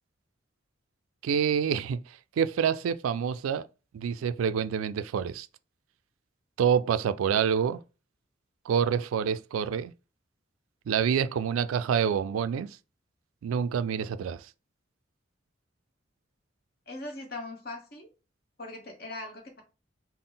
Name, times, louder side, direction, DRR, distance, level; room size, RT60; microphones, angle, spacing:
voice 1, 1.2-3.7 3.9-5.5 6.6-7.8 8.7-9.9 10.9-12.7 13.4-14.5, right 7 dB, 90° right, 0.3 m, -27 dB
voice 2, 16.9-18.1 18.6-19.6, left 2 dB, 50° left, 1.0 m, -40 dB
3.8 x 2.0 x 3.8 m
head